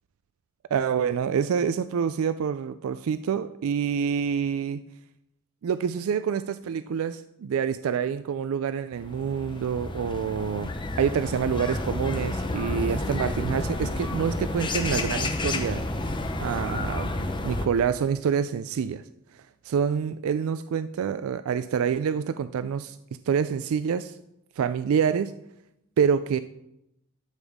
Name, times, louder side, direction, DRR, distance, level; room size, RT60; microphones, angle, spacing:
voice 1, 0.7-4.8 5.6-10.7 11.0-15.9 16.4-19.0 19.6-23.0 23.3-24.1 24.6-25.3 26.0-26.4, right 7 dB, 75° right, 12 dB, 0.3 m, -27 dB
sound 1, 8.9-17.7, left 2 dB, 20° left, 0.7 m, -30 dB
12.0 x 7.0 x 3.5 m, 0.85 s
head